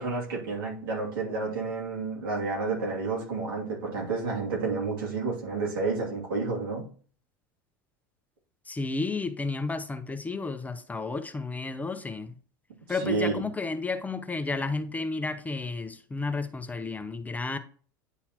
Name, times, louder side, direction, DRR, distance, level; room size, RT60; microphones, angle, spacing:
voice 1, 0.0-6.9 12.9-13.4, right 4 dB, 80° right, 2.6 m, -30 dB
voice 2, 8.7-12.4 12.9-17.6, left 3 dB, 15° left, 0.7 m, -32 dB
10.0 x 4.1 x 2.9 m
hypercardioid pair, 95°, 12 cm